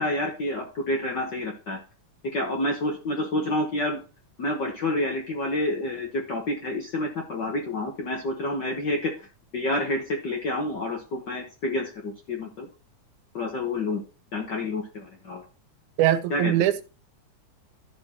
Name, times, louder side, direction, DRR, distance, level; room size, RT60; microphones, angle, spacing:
voice 1, 0.0-1.8 2.2-4.0 4.4-9.3 9.5-12.7 13.3-14.0 14.3-15.4 16.3-16.5, left 1 dB, 60° left, 2 dB, 1.1 m, -28 dB
voice 2, 16.0-16.8, right 12 dB, 90° right, 13 dB, 2.2 m, -22 dB
12.0 x 4.5 x 4.3 m, 0.33 s
omnidirectional pair, 3.4 m